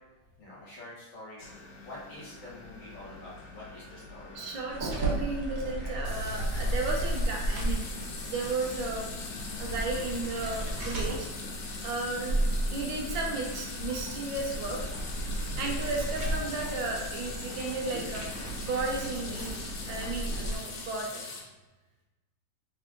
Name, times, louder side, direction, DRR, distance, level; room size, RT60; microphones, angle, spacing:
voice 1, 0.4-1.5 1.8-4.8 5.8-6.0 8.2-8.5 15.3-15.6, left 1 dB, 45° left, -7 dB, 1.5 m, -47 dB
sound 1, 1.4-20.1, left 4 dB, 85° left, 1.6 m, -45 dB
voice 2, 4.3-7.9 8.3-9.1 9.6-11.3 11.8-12.4 12.7-14.8 15.6-19.6 19.9-21.2, right 3 dB, 75° right, 0 dB, 1.4 m, -34 dB
sound 2, 4.7-20.6, right 1 dB, 50° right, 1.3 m, -34 dB
sound 3, 6.0-21.4, left 3 dB, 70° left, 1.5 m, -42 dB
3.7 x 3.3 x 3.7 m, 1.1 s
omnidirectional pair, 2.2 m